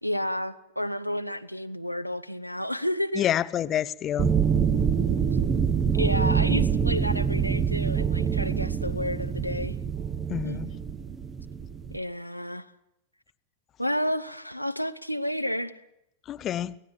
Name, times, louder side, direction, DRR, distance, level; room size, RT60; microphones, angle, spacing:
voice 1, 0.0-3.2 5.3-5.4 5.9-9.7 10.4-10.6 11.9-12.7 13.8-15.8, left 1 dB, 90° left, 9 dB, 0.8 m, -31 dB
voice 2, 3.1-4.3 10.3-10.7 16.3-16.7, left 11 dB, 30° left, 17 dB, 0.8 m, -28 dB
sound 1, 4.2-12.0, right 7 dB, 20° right, 1.1 m, -25 dB
24.5 x 17.5 x 7.4 m, 0.83 s
figure-of-eight pair, 90°, 0 cm